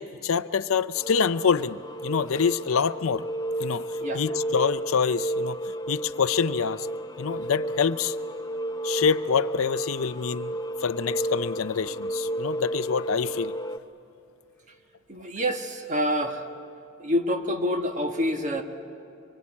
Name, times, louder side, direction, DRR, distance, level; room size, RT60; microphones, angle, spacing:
voice 1, 0.0-3.2 3.6-3.9 4.1-5.6 5.9-6.9 7.2-8.2 8.8-10.5 10.8-13.6, left 6 dB, 75° left, 14 dB, 0.5 m, -26 dB
sound 1, 1.0-13.8, right 1 dB, 15° left, 0.7 m, -32 dB
voice 2, 15.1-16.4 17.0-18.6, equal, 35° right, 4 dB, 1.4 m, -27 dB
24.5 x 23.5 x 8.6 m, 2.7 s
head